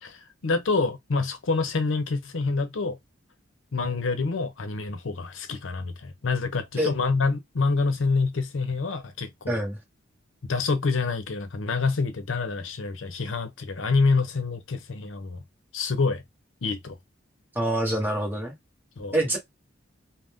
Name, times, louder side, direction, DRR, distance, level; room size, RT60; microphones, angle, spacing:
voice 1, 0.0-3.0 3.7-9.6 10.4-15.4 15.7-16.2 16.6-17.0 19.0-19.2, left 4 dB, 75° left, 0.6 m, -27 dB
voice 2, 9.5-9.8 17.5-18.6 19.1-19.4, right 1 dB, 10° right, 1.1 m, -25 dB
2.5 x 2.1 x 3.5 m
head